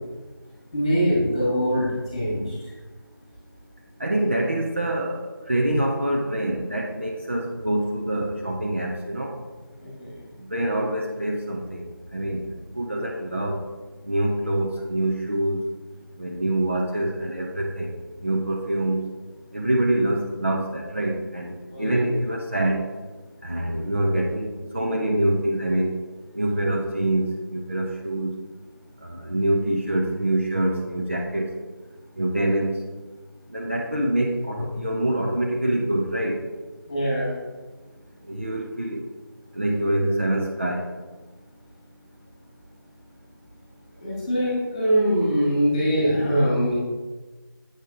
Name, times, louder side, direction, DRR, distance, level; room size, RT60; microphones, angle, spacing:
voice 1, 0.7-2.4 9.8-10.1 21.7-22.0 34.5-34.7 36.9-37.3 44.0-46.7, equal, 10° left, -7 dB, 1.7 m, -23 dB
voice 2, 4.0-9.3 10.5-12.4 12.7-13.6 14.1-15.6 16.2-17.9 18.2-19.0 19.5-22.8 23.4-25.9 26.3-28.3 29.0-31.5 32.2-32.7 33.5-36.4 38.3-39.0 39.5-40.9, right 1 dB, 35° right, -1 dB, 0.7 m, -25 dB
8.0 x 6.4 x 3.8 m, 1.3 s
figure-of-eight pair, 170°, 12 cm